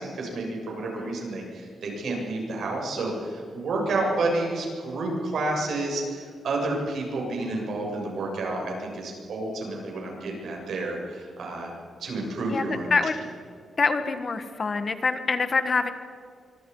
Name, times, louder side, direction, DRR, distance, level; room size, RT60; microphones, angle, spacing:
voice 1, 0.0-11.7 12.0-12.9, right 2 dB, 70° right, -1 dB, 7.3 m, -30 dB
voice 2, 13.8-15.9, left 4 dB, 35° left, 9 dB, 1.5 m, -25 dB
25.0 x 25.0 x 5.6 m, 2.2 s
wide cardioid pair, 135°, 0 cm